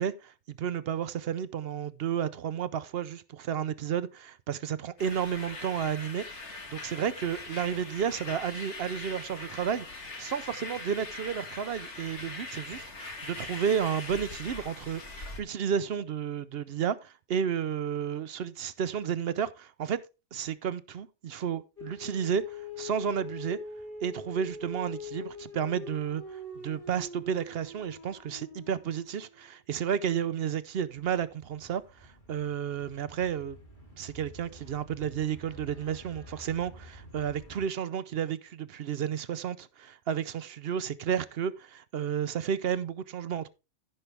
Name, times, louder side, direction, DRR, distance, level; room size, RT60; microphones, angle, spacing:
voice 1, 0.0-20.0 20.3-23.6 24.0-33.6 34.0-43.5, right 8 dB, 60° right, 0.8 m, -32 dB
sound 1, 5.0-15.4, left 3 dB, 75° left, 1.9 m, -42 dB
sound 2, 21.8-29.5 30.7-37.7, left 3 dB, 50° left, 3.1 m, -45 dB
14.5 x 5.6 x 3.3 m
omnidirectional pair, 1.2 m